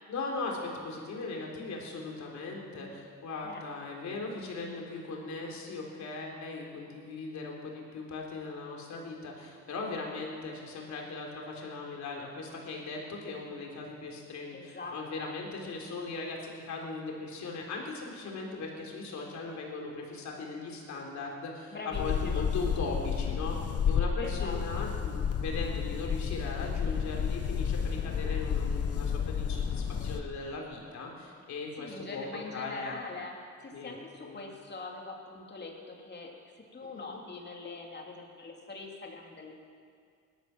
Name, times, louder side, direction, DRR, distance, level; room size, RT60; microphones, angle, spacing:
voice 1, 0.1-23.6 23.8-33.0 33.7-34.4 36.9-37.0, left 3 dB, 65° left, 0 dB, 3.6 m, -39 dB
voice 2, 14.5-15.3 21.7-22.5 24.2-24.9 31.8-39.5, left 3 dB, 35° left, 0 dB, 3.1 m, -43 dB
sound 1, 21.9-30.2, left 7 dB, 50° left, 1.2 m, -31 dB
18.0 x 12.5 x 6.1 m, 2.1 s
cardioid pair, 90°, 30 cm